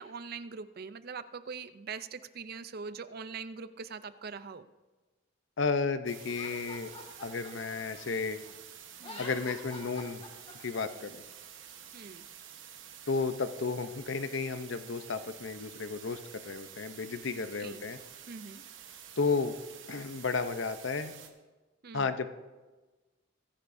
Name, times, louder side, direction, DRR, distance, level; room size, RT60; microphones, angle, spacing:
voice 1, 0.0-4.7 9.0-9.3 11.9-12.2 17.3-17.8 18.3-18.6 21.8-22.1, right 5 dB, 45° right, 13 dB, 0.5 m, -42 dB
voice 2, 5.6-6.9 7.2-8.4 9.2-10.2 10.6-11.2 13.1-18.0 19.2-19.6 19.9-21.1 21.9-22.3, left 4 dB, 60° left, 10 dB, 0.7 m, -33 dB
sound 1, 6.1-21.3, right 9 dB, 65° right, 1.2 m, -50 dB
Laughter, 6.2-8.5 8.9-10.8, left 2 dB, 25° left, 2.0 m, -47 dB
22.0 x 10.5 x 2.7 m, 1.2 s
head